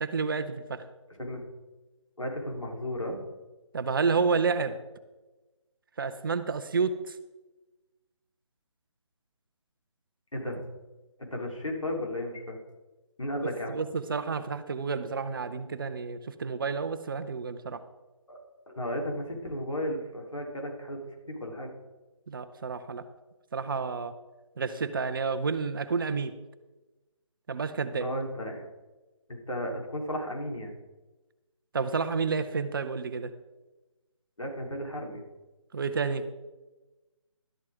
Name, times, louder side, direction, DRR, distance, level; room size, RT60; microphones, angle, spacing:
voice 1, 0.0-0.8 3.7-4.8 6.0-7.2 13.7-17.8 22.3-23.0 23.5-24.1 24.6-26.3 27.5-28.1 31.7-33.3 35.7-36.2, right 5 dB, 45° right, 10 dB, 0.8 m, -30 dB
voice 2, 2.2-3.2 10.3-10.6 11.3-12.6 13.2-13.8 18.3-18.4 18.7-21.7 28.0-28.6 29.3-30.7 34.4-35.2, equal, 80° left, 0 dB, 3.6 m, -34 dB
12.5 x 12.0 x 3.7 m, 1.1 s
figure-of-eight pair, 150°, 16 cm